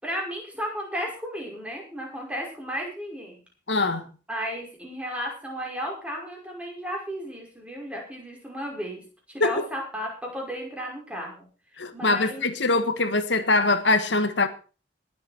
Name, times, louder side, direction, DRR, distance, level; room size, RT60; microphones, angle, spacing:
voice 1, 0.0-3.4 4.3-11.5 11.9-12.4, equal, 5° right, 5.6 m, -34 dB
voice 2, 3.7-4.1 9.4-9.5 11.8-14.5, left 2 dB, 80° left, 1.7 m, -23 dB
20.5 x 8.5 x 4.4 m
head